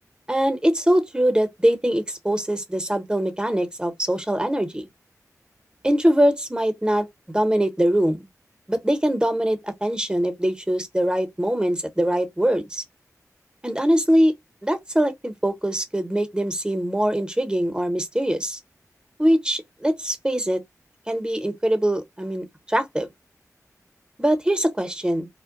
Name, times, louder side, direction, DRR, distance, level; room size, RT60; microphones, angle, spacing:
voice 1, 0.3-4.9 5.8-7.1 7.3-8.3 8.7-12.8 13.6-14.3 14.6-18.6 19.2-20.6 21.1-23.1 24.2-25.3, equal, 15° right, 0.9 m, -22 dB
2.2 x 2.1 x 3.8 m
cardioid pair, 45°, 6 cm